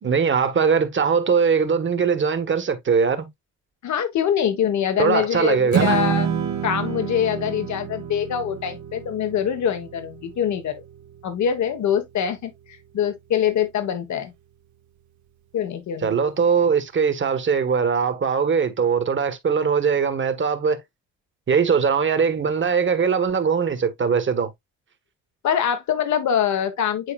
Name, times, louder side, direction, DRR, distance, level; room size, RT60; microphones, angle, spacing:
voice 1, 0.0-3.3 5.0-6.0 16.0-20.8 21.5-24.5, right 6 dB, 40° right, 1.6 m, -21 dB
voice 2, 3.8-6.3 6.6-10.8 11.2-12.5 12.9-14.3 15.5-16.1 25.4-27.1, left 9 dB, 70° left, 1.5 m, -24 dB
Strum, 5.7-12.0, right 8 dB, 70° right, 1.4 m, -28 dB
9.7 x 4.0 x 2.5 m
cardioid pair, 90°, 30 cm